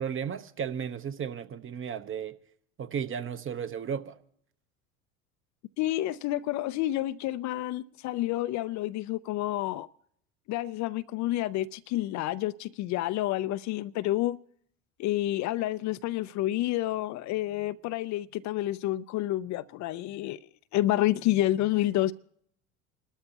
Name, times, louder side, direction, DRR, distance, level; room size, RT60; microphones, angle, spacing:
voice 1, 0.0-2.3 2.8-4.2, right 7 dB, 30° right, 0.9 m, -34 dB
voice 2, 5.8-9.9 10.5-14.4 15.0-20.4 20.7-22.1, left 15 dB, 45° left, 0.5 m, -29 dB
29.0 x 13.0 x 2.9 m
hypercardioid pair, 70°, 41 cm